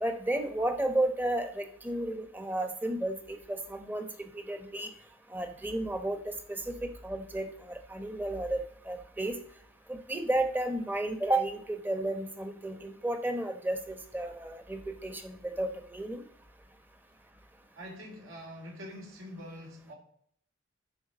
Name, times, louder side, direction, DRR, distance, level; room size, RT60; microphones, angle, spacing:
voice 1, 0.0-4.9 5.3-6.2 6.5-9.4 9.9-16.2, right 1 dB, 10° right, 6 dB, 0.9 m, -33 dB
voice 2, 17.7-20.0, equal, 80° right, 0 dB, 3.4 m, -45 dB
11.0 x 4.6 x 6.1 m, 0.64 s
head